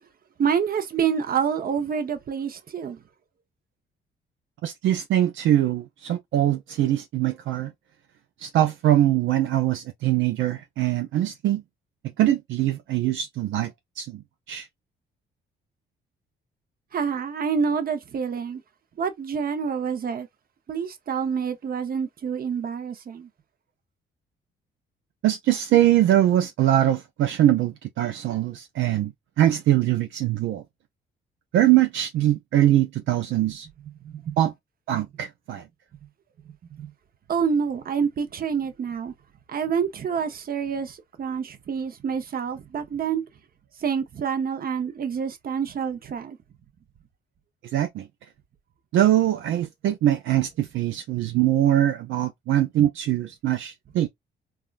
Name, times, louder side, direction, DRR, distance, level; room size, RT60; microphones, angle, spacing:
voice 1, 0.4-3.0 16.9-18.6 19.0-20.3 20.7-23.3 34.0-34.4 36.7-36.9 37.3-39.1 39.5-43.2 43.8-46.4, right 6 dB, 50° right, 0.9 m, -27 dB
voice 2, 4.6-7.7 8.4-11.6 12.2-13.7 14.0-14.2 14.5-14.7 25.2-29.1 29.4-30.6 31.5-33.7 34.4-34.5 34.9-35.6 47.7-48.1 48.9-54.1, right 12 dB, 75° right, 0.5 m, -22 dB
3.5 x 2.3 x 2.4 m
cardioid pair, 90°, 20 cm